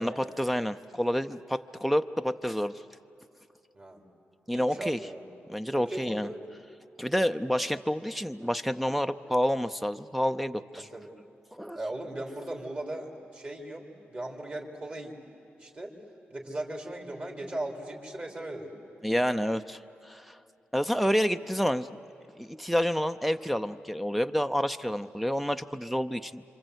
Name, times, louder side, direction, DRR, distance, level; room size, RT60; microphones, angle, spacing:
voice 1, 0.0-2.7 4.5-5.0 5.5-6.3 7.0-10.9 11.5-11.8 19.0-20.4 20.7-21.9 22.4-26.4, equal, 5° right, 10 dB, 0.6 m, -29 dB
voice 2, 4.5-5.2 5.7-6.4 10.8-11.1 11.7-15.1 15.6-15.9 16.3-18.7, right 1 dB, 35° right, 1 dB, 3.4 m, -38 dB
28.5 x 25.5 x 8.1 m, 2.8 s
cardioid pair, 85°, 4 cm